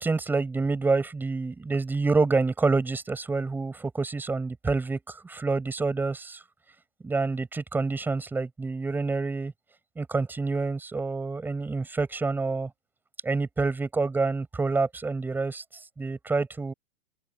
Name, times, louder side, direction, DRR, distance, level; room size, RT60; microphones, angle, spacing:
voice 1, 0.0-6.4 7.0-9.5 10.0-12.7 13.2-15.6 16.0-16.7, right 3 dB, 5° right, 7.5 m, -27 dB
open air
hypercardioid pair, 160°, 32 cm